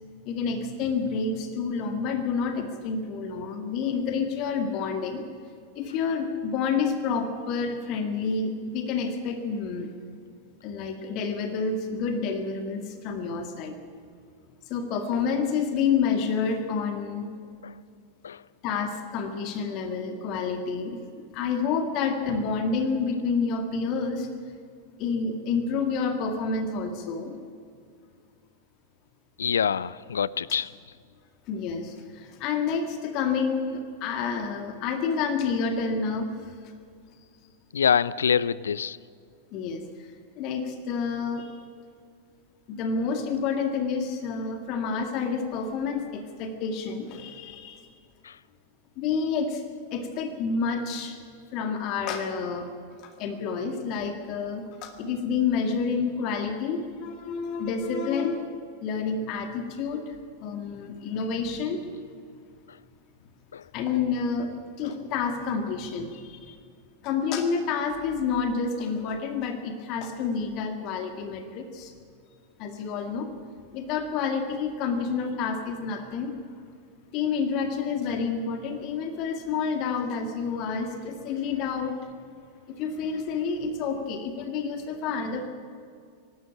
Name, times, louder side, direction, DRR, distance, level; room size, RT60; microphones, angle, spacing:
voice 1, 0.3-5.2 5.8-9.9 10.6-13.8 14.7-17.3 18.6-21.0 21.3-24.3 25.0-27.3 31.5-36.3 39.5-39.8 40.4-41.5 42.7-47.8 49.0-49.6 49.9-51.2 51.5-52.7 53.2-58.4 58.8-60.1 60.4-61.8 63.7-64.5 64.8-66.6 67.0-71.9 72.6-73.3 73.7-76.3 77.1-82.0 82.7-85.5, left 5 dB, 40° left, 7 dB, 2.0 m, -29 dB
voice 2, 29.4-30.7 37.7-39.0 48.2-48.4 62.7-62.8 63.5-63.7, left 7 dB, 70° left, 21 dB, 0.5 m, -25 dB
24.5 x 12.5 x 8.6 m, 2.3 s
figure-of-eight pair, 90°, 0 cm